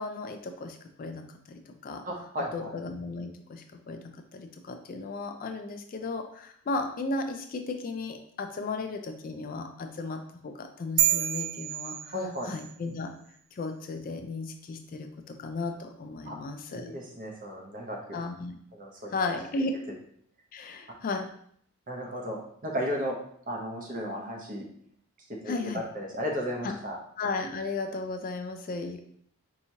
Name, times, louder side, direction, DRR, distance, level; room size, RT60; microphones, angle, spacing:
voice 1, 0.0-2.0 2.5-12.1 12.5-13.1 13.5-16.9 18.1-18.6 19.1-19.8 20.5-21.3 25.5-25.8 26.6-26.7 27.2-29.1, left 3 dB, 40° left, 5 dB, 0.3 m, -35 dB
voice 2, 2.0-2.7 12.1-12.5 16.2-16.4 16.7-18.2 18.7-19.1 21.9-23.2 23.5-24.7 25.4-27.0, equal, 35° right, 0 dB, 0.8 m, -34 dB
sound 1, 11.0-12.7, right 12 dB, 70° right, 0.4 m, -28 dB
4.6 x 2.8 x 2.7 m, 0.65 s
head